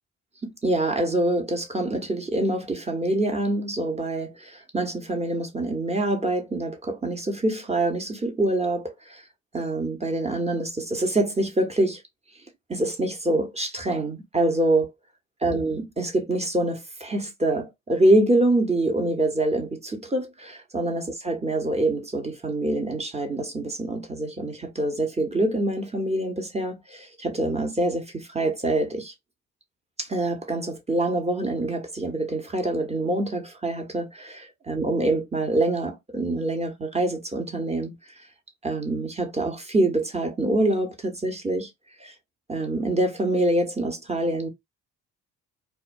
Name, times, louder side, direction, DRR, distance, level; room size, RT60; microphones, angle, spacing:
voice 1, 0.6-9.2 9.5-12.0 12.7-14.9 15.4-29.1 30.0-38.0 38.6-41.7 42.0-42.1 42.5-44.5, right 2 dB, 15° right, 0.9 m, -25 dB
2.2 x 2.2 x 2.5 m
hypercardioid pair, 50°, 39 cm